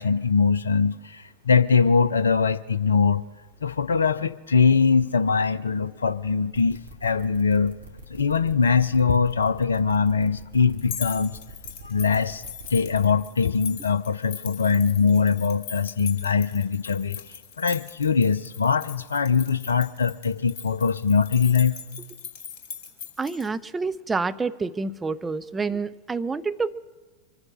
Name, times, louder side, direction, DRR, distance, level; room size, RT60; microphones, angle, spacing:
voice 1, 0.0-3.2 3.6-7.7 8.1-11.4 11.8-12.4 12.7-17.2 17.6-21.7, left 5 dB, 70° left, 15 dB, 0.6 m, -22 dB
sound 1, 6.4-13.1, right 2 dB, 75° right, 2.7 m, -44 dB
sound 2, 10.8-23.5, left 6 dB, 45° left, 2.3 m, -40 dB
voice 2, 23.2-26.7, right 4 dB, 15° right, 12 dB, 0.5 m, -28 dB
24.0 x 9.7 x 6.2 m, 1.3 s
figure-of-eight pair, 90°, 0 cm